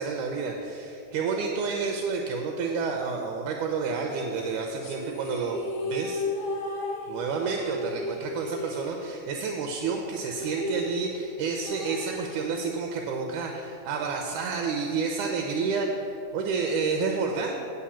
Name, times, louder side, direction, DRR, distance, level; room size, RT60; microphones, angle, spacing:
voice 1, 0.0-6.3 7.1-17.5, right 4 dB, 80° right, 2 dB, 2.1 m, -30 dB
sound 1, 4.8-9.5 9.7-9.8 10.1-12.8, left 1 dB, 55° left, 2.0 m, -34 dB
8.6 x 5.4 x 7.1 m, 2.6 s
omnidirectional pair, 3.8 m